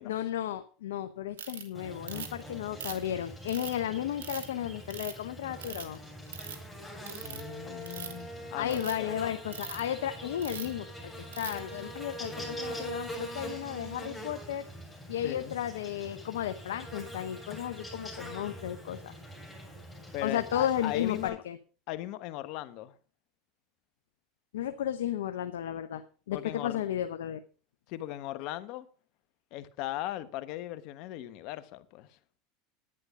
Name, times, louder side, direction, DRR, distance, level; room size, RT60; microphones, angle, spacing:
voice 1, 0.0-6.0 8.6-14.7 15.1-19.1 20.2-21.6 24.5-26.0 26.3-27.4, left 11 dB, 85° left, 0.8 m, -34 dB
Ratchet pawl, 1.4-1.6 2.1-2.4 2.8-3.7 4.2-4.5 4.9-5.2 5.6-6.0 6.3-6.6 7.1-7.4 7.8-8.2 8.7-8.9 9.5-9.8 10.4-10.7 11.3-11.6, right 7 dB, 90° right, 1.9 m, -40 dB
Buzz, 1.7-21.3, equal, ahead, 7.4 m, -43 dB
voice 2, 7.2-9.1 15.2-15.6 20.1-21.4 21.9-23.0 26.3-26.8 27.9-28.9 29.5-32.2, left 14 dB, 60° left, 1.1 m, -38 dB
11.0 x 9.8 x 4.9 m
hypercardioid pair, 95°, 0 cm